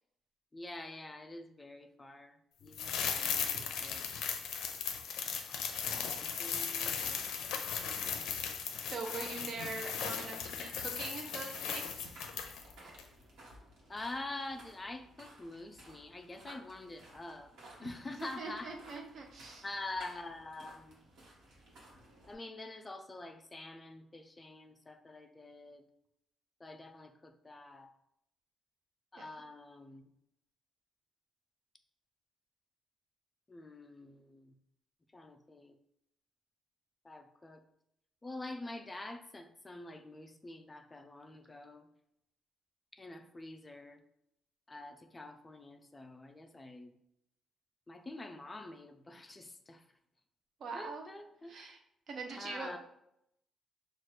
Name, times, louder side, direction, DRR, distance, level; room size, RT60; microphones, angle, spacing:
voice 1, 0.5-4.1 6.0-7.3 13.9-17.5 17.8-18.7 19.6-21.0 22.3-25.9 26.6-27.9 29.1-30.0 33.5-34.5 35.1-35.8 37.0-37.6 38.2-41.9 42.9-44.0 44.7-47.0 47.9-49.8 50.7-51.6 52.3-52.8, left 2 dB, 15° left, 7 dB, 0.3 m, -46 dB
sound 1, 2.7-12.7 13.0-13.1, left 7 dB, 85° left, 0.5 m, -37 dB
voice 2, 5.9-6.2 8.9-12.1 17.8-17.9 18.2-19.7 29.2-29.3 50.6-51.1 51.5-51.8 52.1-52.7, right 4 dB, 45° right, 2 dB, 0.7 m, -43 dB
sound 2, 11.8-22.3, right 1 dB, 65° right, 1.4 m, -57 dB
5.7 x 2.4 x 3.2 m, 0.77 s
cardioid pair, 175°, 0 cm